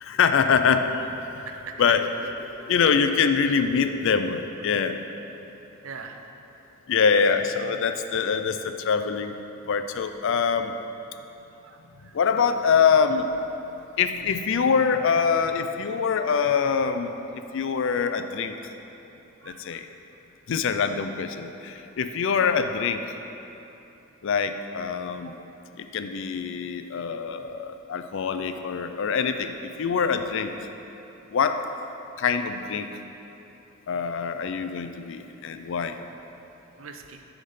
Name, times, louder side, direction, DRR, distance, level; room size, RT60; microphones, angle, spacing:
voice 1, 0.0-1.4 1.8-5.0 6.9-9.3 9.7-10.8 12.0-13.3 14.0-18.6 19.5-19.9 20.5-23.2 24.2-25.4 25.8-30.5 31.3-31.6 32.2-32.9 33.9-36.0, left 6 dB, 65° left, 8 dB, 0.4 m, -24 dB
voice 2, 5.8-6.2 11.6-12.1 19.4-19.6 25.2-25.3 28.8-28.9 35.5-35.7 36.8-37.2, right 5 dB, 75° right, 5 dB, 0.6 m, -42 dB
10.0 x 3.6 x 5.5 m, 3.0 s
head